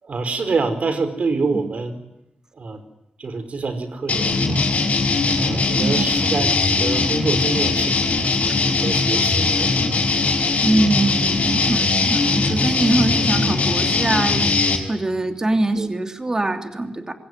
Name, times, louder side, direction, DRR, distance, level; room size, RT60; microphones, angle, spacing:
voice 1, 0.0-2.0 2.5-2.8 3.2-4.6 5.3-8.2 8.7-10.1 15.8-15.9, right 4 dB, 55° right, 10 dB, 4.7 m, -26 dB
sound 1, 4.1-14.8, left 3 dB, 60° left, 6.2 m, -20 dB
voice 2, 10.6-14.4 14.9-17.1, right 2 dB, 25° right, 6 dB, 3.0 m, -22 dB
26.0 x 23.5 x 9.8 m, 0.86 s
wide cardioid pair, 155°, 3 cm